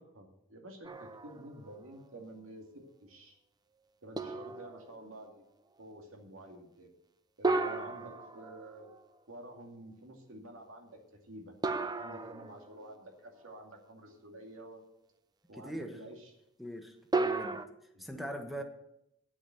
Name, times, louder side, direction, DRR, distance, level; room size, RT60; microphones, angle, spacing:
voice 1, 0.0-3.4 4.0-5.4 5.8-6.9 7.4-8.9 9.3-11.5 12.0-14.8 15.5-16.3 17.9-18.0, right 1 dB, 90° right, 2 dB, 2.4 m, -50 dB
sound 1, 0.8-1.7 2.2-2.3 4.2-5.1 7.4-9.0 11.6-13.0 17.1-17.7, right 3 dB, 20° right, 0.5 m, -34 dB
voice 2, 15.6-16.0 16.6-17.6 18.0-18.6, right 1 dB, ahead, 4 dB, 1.3 m, -41 dB
8.6 x 8.4 x 7.8 m, 0.81 s
head